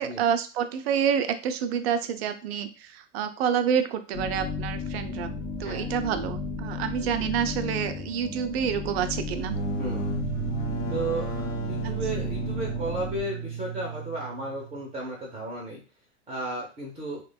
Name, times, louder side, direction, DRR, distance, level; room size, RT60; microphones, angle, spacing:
voice 1, 0.0-9.6, right 8 dB, 60° right, 9 dB, 0.5 m, -28 dB
sound 1, 4.1-13.3, left 4 dB, 25° left, 0.6 m, -34 dB
sound 2, 9.3-14.9, right 5 dB, 80° left, 0.9 m, -33 dB
voice 2, 9.8-10.1 10.9-11.4 11.7-15.8 16.3-17.2, right 2 dB, 15° right, -1 dB, 0.6 m, -34 dB
3.1 x 2.2 x 2.2 m, 0.34 s
hypercardioid pair, 95°, 36 cm